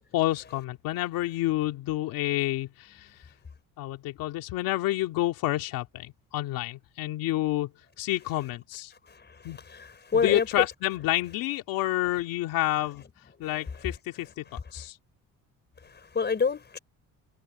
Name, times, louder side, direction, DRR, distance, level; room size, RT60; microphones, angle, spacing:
voice 1, 0.1-3.1 3.8-7.7 8.0-8.9 9.4-9.6 10.2-13.0 13.4-14.4 14.7-15.0, left 16 dB, 90° left, 2.5 m, -29 dB
voice 2, 9.1-10.7 13.4-13.7 15.8-16.8, left 5 dB, 30° left, 5.1 m, -29 dB
cardioid pair, 100°, 33 cm